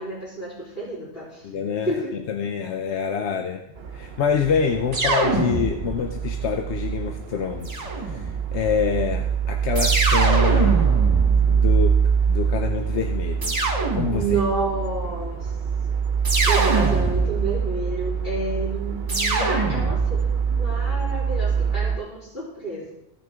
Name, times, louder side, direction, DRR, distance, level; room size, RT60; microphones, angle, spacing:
voice 1, 0.0-1.5 1.9-2.1 14.1-15.6 16.3-22.9, right 2 dB, 55° left, -11 dB, 3.6 m, -30 dB
voice 2, 1.4-1.9 2.3-3.6 3.9-10.8 11.5-12.0 12.3-13.6 13.9-14.4, left 6 dB, 75° left, 4 dB, 1.0 m, -26 dB
sound 1, 3.8-22.0, right 7 dB, 60° right, 0.9 m, -24 dB
sound 2, 4.9-6.1 7.6-8.5 9.7-12.1 13.4-14.5 16.2-17.6 19.1-20.3, right 2 dB, 35° right, 1.4 m, -25 dB
15.5 x 6.1 x 3.6 m, 0.87 s
omnidirectional pair, 1.2 m